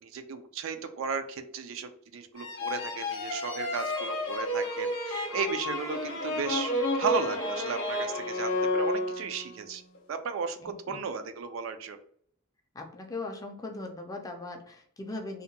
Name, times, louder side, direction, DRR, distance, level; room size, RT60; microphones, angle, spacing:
voice 1, 0.0-9.8 10.1-12.0, right 5 dB, 65° right, 9 dB, 0.3 m, -35 dB
sound 1, 2.4-9.5, left 1 dB, 60° left, 0.6 m, -31 dB
voice 2, 10.6-11.0 12.7-15.4, left 2 dB, 15° left, 3 dB, 0.4 m, -39 dB
2.7 x 2.1 x 2.7 m, 0.62 s
head